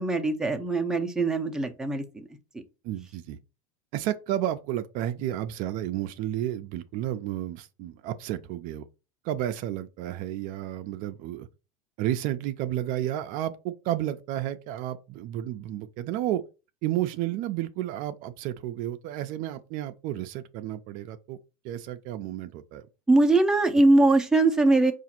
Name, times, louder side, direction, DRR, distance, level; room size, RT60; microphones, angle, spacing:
voice 1, 0.0-2.2 23.1-24.9, right 2 dB, 5° right, 0.6 m, -21 dB
voice 2, 2.8-3.4 3.9-8.8 9.2-11.5 12.0-16.4 16.8-21.4 21.6-22.9 23.7-23.8, right 12 dB, 50° right, 0.4 m, -32 dB
4.9 x 2.5 x 4.2 m
supercardioid pair, 125°, 18 cm